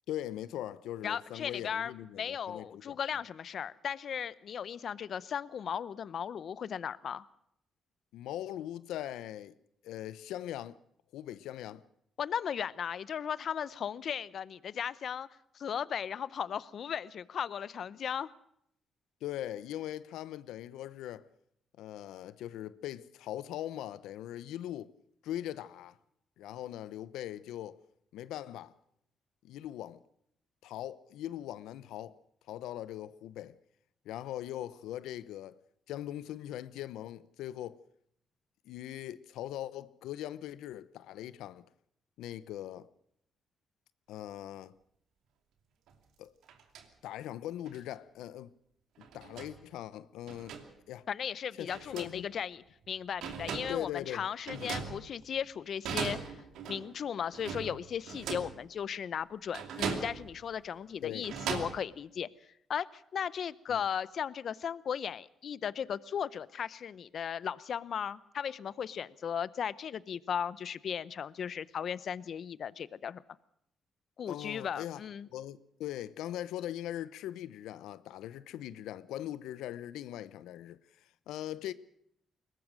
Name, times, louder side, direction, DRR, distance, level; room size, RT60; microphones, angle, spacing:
voice 1, 0.1-3.0 8.1-9.6 9.8-10.8 11.1-11.8 19.2-21.3 21.8-24.9 25.2-26.0 26.4-27.8 28.1-28.7 29.4-30.0 30.6-32.2 32.5-33.6 34.0-35.6 35.9-37.8 38.6-41.6 42.2-42.9 44.1-44.7 46.2-46.3 47.0-48.5 49.0-50.6 50.9-51.1 51.6-52.3 53.7-54.2 54.5-54.7 61.0-61.3 63.7-63.8 74.3-75.0 75.3-80.8 81.3-81.7, left 12 dB, 90° left, 0.9 m, -40 dB
voice 2, 1.0-7.3 12.2-15.3 15.5-18.3 51.1-56.3 56.7-62.3 62.7-73.2 74.2-75.3, left 8 dB, 60° left, 0.8 m, -36 dB
sound 1, 45.9-46.0 46.4-46.9 47.7-47.8 49.0-49.6 50.3-50.7 51.7-52.2 52.8-52.9 53.2-53.9 54.5-55.4 55.8-56.9 57.3-58.6 59.5-60.4 61.0-61.8, right 6 dB, 80° right, 2.7 m, -39 dB
22.0 x 19.5 x 6.3 m
cardioid pair, 90°, 0 cm